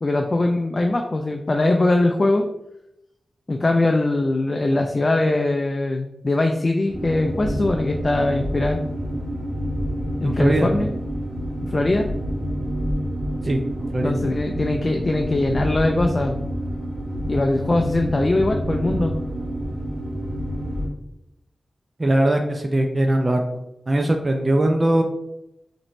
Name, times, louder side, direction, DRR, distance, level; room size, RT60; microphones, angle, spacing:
voice 1, 0.0-2.4 3.5-8.8 10.2-10.9 11.6-12.1 14.0-16.4 17.3-19.2, left 2 dB, 35° left, 3 dB, 0.3 m, -21 dB
sound 1, 6.9-20.9, equal, 85° right, 1.0 m, -28 dB
voice 2, 10.2-10.7 13.4-13.6 13.9-14.1 22.0-23.4 23.9-25.0, right 1 dB, 30° right, 4 dB, 0.4 m, -20 dB
3.0 x 2.6 x 4.2 m, 0.86 s
wide cardioid pair, 75°, 0 cm